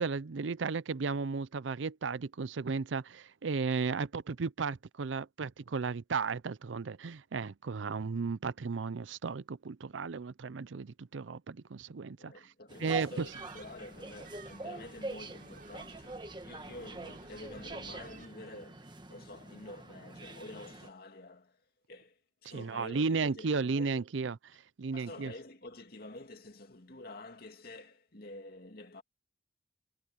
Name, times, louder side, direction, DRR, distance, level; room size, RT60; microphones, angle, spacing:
voice 1, 0.0-12.3 12.8-13.3 22.4-25.3, right 4 dB, 85° right, 0.6 m, -34 dB
voice 2, 12.2-21.6 21.9-24.0 24.9-29.0, left 2 dB, 55° left, 2.4 m, -48 dB
sound 1, 12.7-20.9, right 2 dB, 25° right, 1.5 m, -45 dB
sound 2, 13.2-18.3, right 3 dB, 50° right, 5.8 m, -55 dB
head